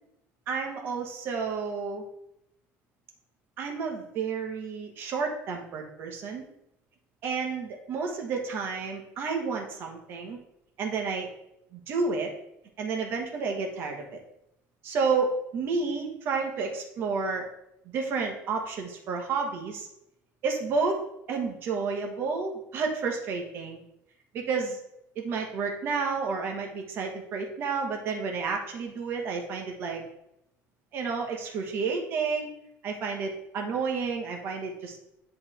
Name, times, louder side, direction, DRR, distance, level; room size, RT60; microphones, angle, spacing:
voice 1, 0.5-2.1 3.6-6.4 7.2-10.4 10.8-11.3 11.7-12.3 12.8-14.2 14.8-17.5 17.9-19.9 20.4-21.0 21.3-23.8 24.3-24.8 25.2-30.0 30.9-32.5 32.8-35.0, right 4 dB, 45° right, 2 dB, 1.2 m, -30 dB
9.8 x 3.5 x 3.4 m, 0.81 s
cardioid pair, 165°, 5 cm